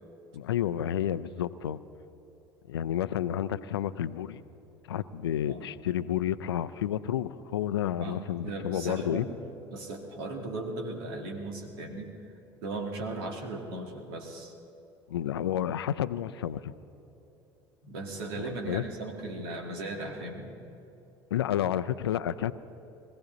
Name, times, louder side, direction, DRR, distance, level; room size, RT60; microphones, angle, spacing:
voice 1, 0.3-1.8 2.7-4.4 4.9-9.3 15.1-16.7 18.3-18.8 21.3-22.5, left 10 dB, 80° left, 15 dB, 0.5 m, -30 dB
voice 2, 8.0-9.4 9.7-12.1 12.6-14.5 17.8-20.5, right 2 dB, 70° right, 2 dB, 2.3 m, -37 dB
21.5 x 15.5 x 4.0 m, 2.9 s
hypercardioid pair, 65°, 13 cm